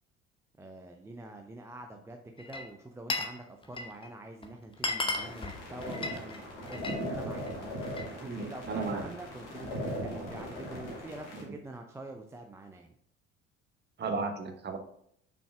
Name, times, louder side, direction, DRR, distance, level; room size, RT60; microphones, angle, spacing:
voice 1, 0.6-7.5 8.2-12.9, right 2 dB, 10° right, 3 dB, 0.5 m, -46 dB
Glass, 2.4-3.4 3.6-4.1 4.4-4.5 4.7-7.0 7.4-8.1, left 2 dB, 15° left, 0.9 m, -35 dB
sound 1, 5.1-11.4, equal, 70° left, 2.1 m, -39 dB
voice 2, 8.2-9.0 14.0-14.8, right 4 dB, 30° right, 5 dB, 1.1 m, -34 dB
7.0 x 5.9 x 2.4 m, 0.67 s
figure-of-eight pair, 60°, 36 cm